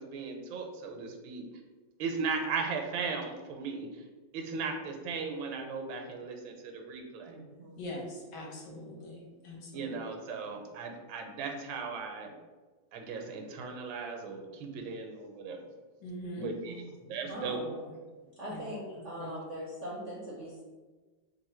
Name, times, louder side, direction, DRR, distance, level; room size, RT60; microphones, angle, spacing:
voice 1, 0.0-1.4 2.0-4.0 4.3-7.3 9.7-12.3 12.9-15.6 16.4-16.8 17.1-17.6, right 4 dB, 85° right, 3 dB, 1.4 m, -37 dB
voice 2, 7.2-7.8 16.6-16.8 17.3-17.8 18.4-20.6, equal, 65° right, -5 dB, 0.7 m, -41 dB
voice 3, 7.8-9.9 16.0-16.5 18.5-18.6 19.2-19.3, left 1 dB, 65° left, -1 dB, 1.3 m, -42 dB
3.2 x 2.6 x 4.2 m, 1.3 s
omnidirectional pair, 2.1 m